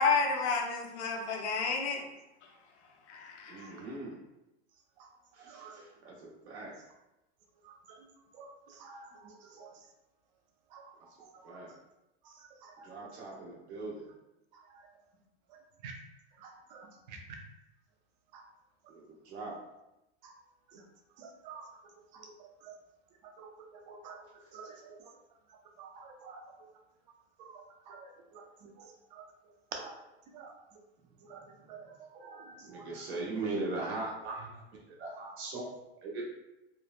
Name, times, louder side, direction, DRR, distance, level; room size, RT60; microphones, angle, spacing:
voice 1, 0.0-2.0 3.1-3.7, left 4 dB, 75° left, 2 dB, 0.7 m, -30 dB
voice 2, 3.5-4.2 5.3-6.7 11.4-11.7 12.8-14.1 18.9-19.6 32.7-34.6 35.0-35.7 36.0-36.2, right 2 dB, 70° right, -4 dB, 1.1 m, -39 dB
voice 3, 5.4-5.9 7.6-9.7 10.7-11.6 12.2-13.1 14.5-14.8 15.8-15.9 16.4-17.2 18.3-18.4 20.2-20.3 20.7-20.8 21.2-21.7 22.1-22.8 23.4-25.1 25.8-26.4 27.4-29.2 29.7-30.0 30.3-30.5 31.2-31.4 31.7-33.1, right 5 dB, 40° right, 2 dB, 0.5 m, -50 dB
3.1 x 2.1 x 2.4 m, 0.94 s
supercardioid pair, 150°, 35 cm